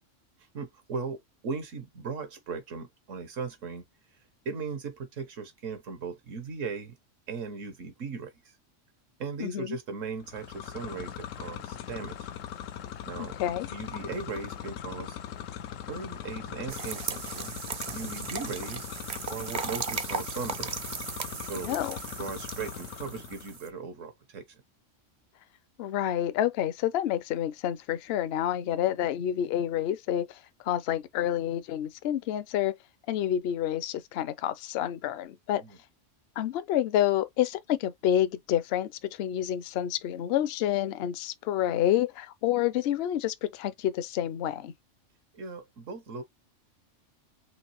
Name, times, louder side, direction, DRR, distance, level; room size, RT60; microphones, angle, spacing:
voice 1, 0.5-3.8 4.4-7.0 7.3-8.3 9.2-12.2 13.0-13.3 13.7-15.2 15.9-17.6 17.9-18.9 19.3-20.7 21.4-21.8 22.1-24.6 35.5-35.8 45.3-46.2, right 5 dB, 80° right, 1.4 m, -38 dB
voice 2, 9.4-9.8 13.2-13.7 21.7-22.0 25.8-30.4 30.6-32.7 33.1-35.6 36.4-44.7, left 11 dB, 65° left, 0.7 m, -28 dB
sound 1, 10.2-23.6, left 9 dB, 90° left, 1.0 m, -40 dB
sound 2, 16.7-23.7, right 6 dB, 50° right, 0.6 m, -37 dB
5.2 x 3.1 x 3.0 m
omnidirectional pair, 1.3 m